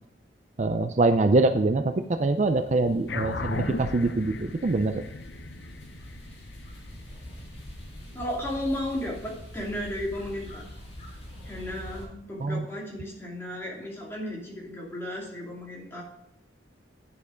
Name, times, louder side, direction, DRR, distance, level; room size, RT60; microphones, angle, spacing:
voice 1, 0.6-5.0 12.4-12.6, right 2 dB, 40° right, 8 dB, 0.5 m, -24 dB
sound 1, 1.9-12.0, equal, 35° left, 4.0 m, -44 dB
sound 2, 3.1-7.8, left 3 dB, 70° left, 0.7 m, -36 dB
voice 2, 8.1-10.7 11.4-16.0, left 1 dB, 15° left, -3 dB, 2.7 m, -34 dB
9.6 x 6.9 x 5.0 m, 0.82 s
head